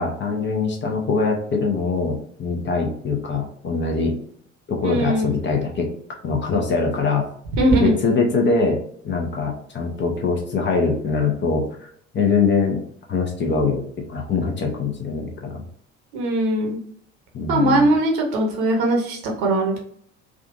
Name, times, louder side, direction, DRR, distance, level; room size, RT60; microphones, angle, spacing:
voice 1, 0.0-4.2 4.7-5.9 6.2-7.2 7.8-8.8 9.0-11.9 12.1-12.8 13.1-13.8 14.1-15.6 17.3-17.9, left 4 dB, 30° left, 2 dB, 0.8 m, -23 dB
voice 2, 4.8-5.4 7.6-7.9 16.1-16.8 17.5-19.8, right 1 dB, 60° right, 1 dB, 1.0 m, -20 dB
3.6 x 2.4 x 2.5 m, 0.62 s
figure-of-eight pair, 60°, 38 cm